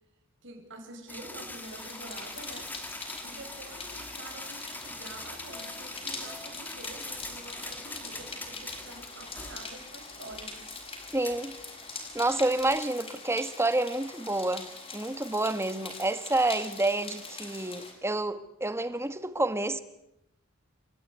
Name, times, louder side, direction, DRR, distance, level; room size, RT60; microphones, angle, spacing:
voice 1, 0.4-10.6, right 2 dB, 60° right, 6.5 m, -47 dB
sound 1, 1.1-12.8, left 2 dB, 10° left, 2.7 m, -44 dB
sound 2, 1.6-17.9, left 3 dB, 30° left, 7.1 m, -43 dB
voice 2, 11.1-11.5 12.1-14.7 14.9-19.8, right 2 dB, 10° right, 1.4 m, -29 dB
29.5 x 15.5 x 9.6 m
head